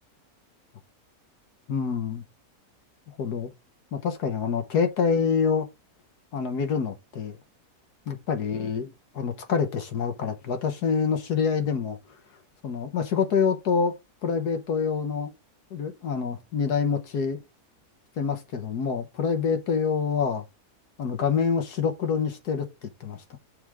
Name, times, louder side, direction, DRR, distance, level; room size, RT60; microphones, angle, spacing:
voice 1, 1.7-2.2 3.2-3.5 3.9-5.7 6.3-7.4 8.1-12.0 12.6-13.9 14.2-15.3 15.7-17.4 18.2-20.4 21.0-23.4, left 6 dB, 90° left, 1.8 m, -26 dB
6.9 x 3.6 x 6.2 m
omnidirectional pair, 1.6 m